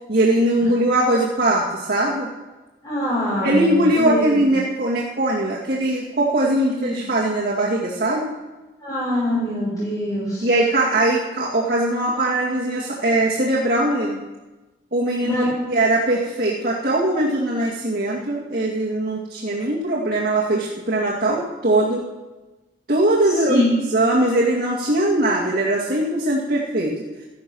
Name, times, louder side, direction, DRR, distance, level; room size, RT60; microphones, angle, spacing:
voice 1, 0.1-2.3 3.4-8.3 10.4-14.2 14.9-22.1 22.9-23.6 23.9-27.0, right 1 dB, 50° right, -4 dB, 2.1 m, -21 dB
voice 2, 2.8-4.5 6.6-7.0 8.8-10.5 15.2-15.7 23.4-23.8, left 1 dB, 20° left, -9 dB, 6.2 m, -24 dB
14.5 x 11.5 x 6.2 m, 1.1 s
head